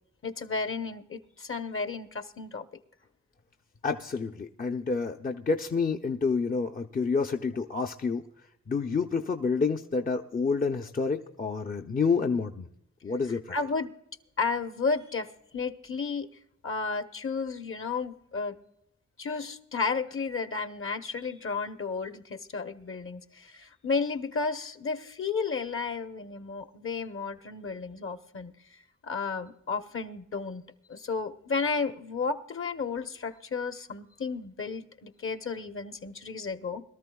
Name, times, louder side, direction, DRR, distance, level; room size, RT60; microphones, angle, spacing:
voice 1, 0.2-2.6 13.5-13.9 14.4-15.3 15.5-16.3 16.6-18.6 19.2-28.5 29.0-30.6 30.9-36.8, left 4 dB, 45° left, 8 dB, 1.0 m, -32 dB
voice 2, 3.8-8.2 8.7-12.7 13.0-13.6, left 4 dB, 30° left, 4 dB, 0.6 m, -28 dB
22.0 x 13.0 x 2.3 m, 0.77 s
cardioid pair, 65°, 30 cm